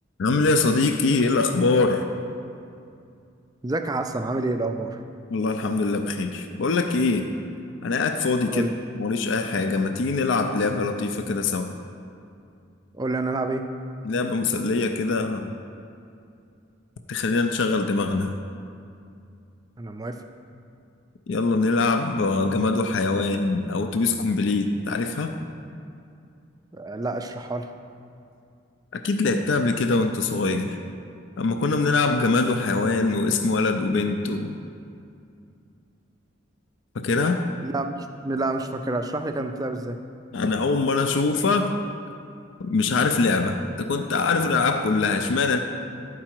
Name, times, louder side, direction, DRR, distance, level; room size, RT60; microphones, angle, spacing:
voice 1, 0.2-2.1 5.3-7.3 7.8-8.7 9.0-11.7 14.0-15.5 17.1-18.3 21.3-25.3 28.9-30.8 31.4-34.6 37.0-37.4 40.3-41.7 42.6-45.6, left 3 dB, 65° left, 6 dB, 0.4 m, -23 dB
voice 2, 3.6-5.0 8.5-8.7 12.9-13.6 19.8-20.2 26.7-27.7 37.6-37.9 38.2-40.0, right 2 dB, 20° right, 7 dB, 0.4 m, -28 dB
12.0 x 4.8 x 4.5 m, 2.5 s
head